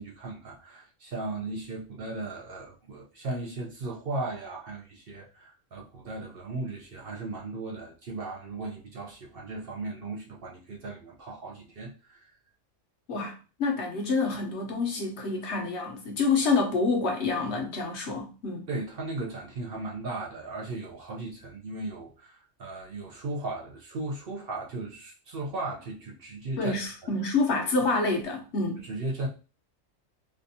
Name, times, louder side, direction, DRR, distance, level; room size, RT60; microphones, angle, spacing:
voice 1, 0.0-12.3 18.7-26.8 27.0-27.1 28.8-29.3, right 2 dB, 55° right, 0.8 m, -36 dB
voice 2, 13.1-18.7 26.6-28.8, left 3 dB, 65° left, 1.0 m, -27 dB
3.4 x 2.4 x 2.6 m
omnidirectional pair, 1.3 m